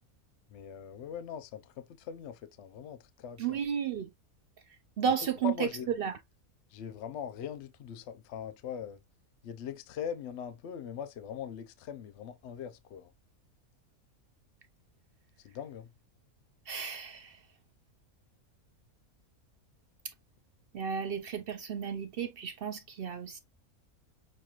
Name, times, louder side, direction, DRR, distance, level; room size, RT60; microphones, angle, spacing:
voice 1, 0.5-3.6 5.4-5.9 6.7-9.0 9.4-13.1 15.4-15.9, left 8 dB, 65° left, 0.8 m, -41 dB
voice 2, 3.4-4.1 5.0-5.7 6.0-6.1 16.7-17.5 20.0-20.1 20.7-23.4, right 7 dB, 65° right, 0.5 m, -33 dB
6.4 x 2.9 x 2.4 m
omnidirectional pair, 1.5 m